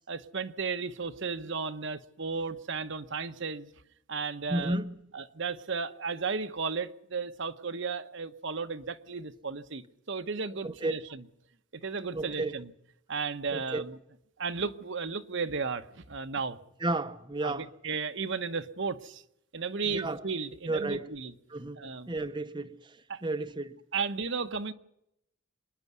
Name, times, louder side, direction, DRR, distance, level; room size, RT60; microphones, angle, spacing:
voice 1, 0.1-3.7 4.1-4.8 5.1-11.2 11.8-12.7 13.1-13.9 14.4-16.6 17.4-19.2 19.5-21.3 21.8-22.1 23.1-23.2 23.9-24.7, right 5 dB, 60° right, 1.0 m, -34 dB
voice 2, 4.5-5.0 10.6-10.9 12.1-12.6 13.5-13.8 16.8-17.7 19.9-20.2 20.6-21.1 21.5-23.8, right 2 dB, 20° right, 0.8 m, -33 dB
26.0 x 10.5 x 9.5 m
head